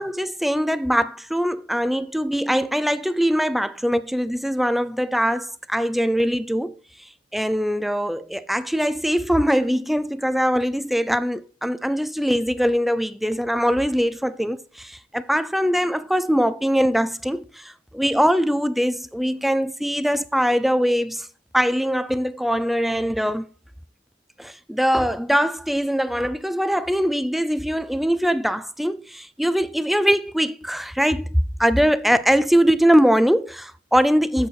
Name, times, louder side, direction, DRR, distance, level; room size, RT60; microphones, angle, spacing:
voice 1, 0.0-6.7 7.3-21.3 21.5-23.4 24.4-34.5, equal, ahead, 0.4 m, -22 dB
8.0 x 7.9 x 4.5 m
head